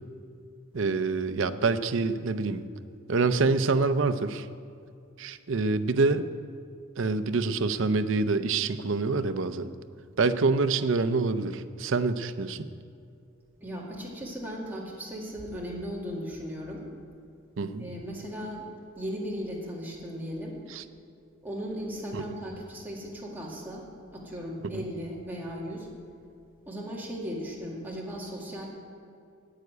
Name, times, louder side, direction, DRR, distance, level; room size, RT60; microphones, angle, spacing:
voice 1, 0.7-2.6 3.1-4.5 5.2-6.2 7.0-9.7 10.2-12.7 17.6-17.9 20.7-20.8 22.1-22.4, right 3 dB, 65° right, 12 dB, 0.6 m, -26 dB
voice 2, 13.6-16.9 17.8-18.7 18.9-20.6 21.4-23.8 24.1-25.9 26.7-28.7, equal, 10° right, -4 dB, 2.1 m, -37 dB
9.8 x 9.5 x 8.0 m, 2.5 s
head